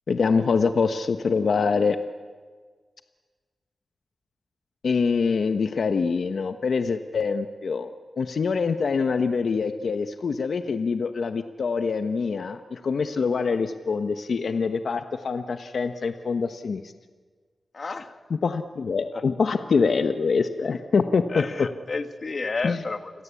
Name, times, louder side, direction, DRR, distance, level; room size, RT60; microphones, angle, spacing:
voice 1, 0.1-2.0 4.8-7.9 8.2-16.9 18.3-21.7 22.6-22.8, left 5 dB, 70° left, 8 dB, 1.2 m, -25 dB
voice 2, 17.7-18.2 19.1-19.2 21.3-23.1, left 3 dB, 50° left, 9 dB, 1.8 m, -31 dB
29.5 x 21.5 x 8.5 m, 1.5 s
cardioid pair, 75°, 0 cm